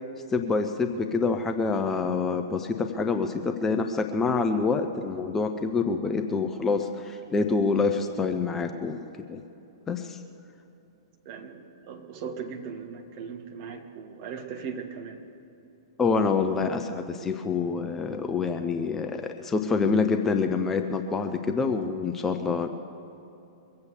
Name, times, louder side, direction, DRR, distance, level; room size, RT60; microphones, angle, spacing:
voice 1, 0.3-9.4 9.9-10.2 16.0-22.7, left 4 dB, 15° left, 6 dB, 0.7 m, -26 dB
voice 2, 11.2-15.3, right 6 dB, 40° right, 4 dB, 1.5 m, -38 dB
22.5 x 8.1 x 6.9 m, 2.8 s
figure-of-eight pair, 105°, 2 cm